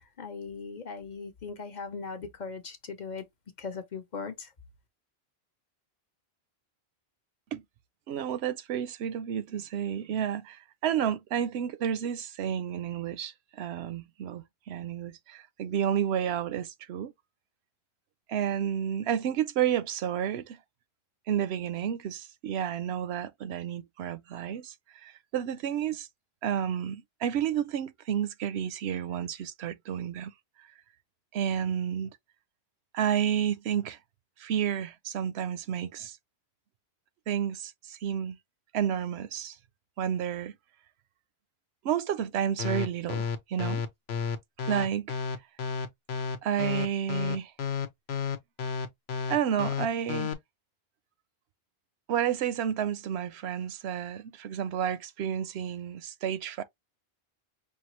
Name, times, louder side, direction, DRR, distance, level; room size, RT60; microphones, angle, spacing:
voice 1, 0.0-3.2 3.6-4.5, left 5 dB, 50° left, 0.8 m, -39 dB
voice 2, 8.1-17.1 18.3-20.6 21.3-24.7 25.0-26.1 26.4-30.3 31.3-32.1 32.9-34.0 34.4-36.2 37.3-38.4 38.7-39.6 40.0-40.5 41.8-43.8 44.7-45.1 46.4-47.5 49.3-50.3 52.1-56.6, right 9 dB, 85° right, 0.8 m, -31 dB
sound 1, 42.6-50.3, left 6 dB, 85° left, 1.0 m, -31 dB
5.4 x 2.4 x 2.9 m
omnidirectional pair, 1.1 m